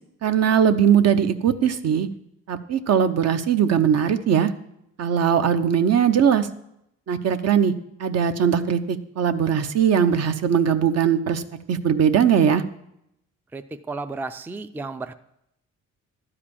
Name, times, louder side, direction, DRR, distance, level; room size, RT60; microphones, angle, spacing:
voice 1, 0.2-2.1 2.5-4.5 5.0-6.5 7.1-7.7 8.0-12.6, right 8 dB, 55° right, 9 dB, 0.8 m, -20 dB
voice 2, 13.5-15.1, right 3 dB, 5° right, 10 dB, 0.4 m, -33 dB
12.0 x 4.9 x 8.6 m, 0.79 s
cardioid pair, 90°, 30 cm